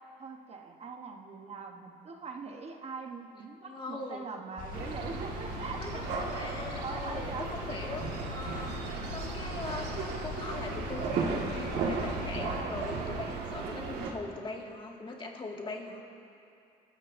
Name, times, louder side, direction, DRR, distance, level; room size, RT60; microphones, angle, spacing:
voice 1, 0.2-7.5, right 4 dB, 40° right, 3 dB, 1.0 m, -42 dB
voice 2, 3.6-4.2 5.8-16.0, left 3 dB, 30° left, 0 dB, 1.8 m, -41 dB
sound 1, 4.6-12.6, left 5 dB, 55° left, 1.5 m, -42 dB
sound 2, 4.7-14.1, right 4 dB, 85° right, 1.7 m, -35 dB
27.0 x 13.5 x 2.6 m, 2.6 s
cardioid pair, 110°, 17 cm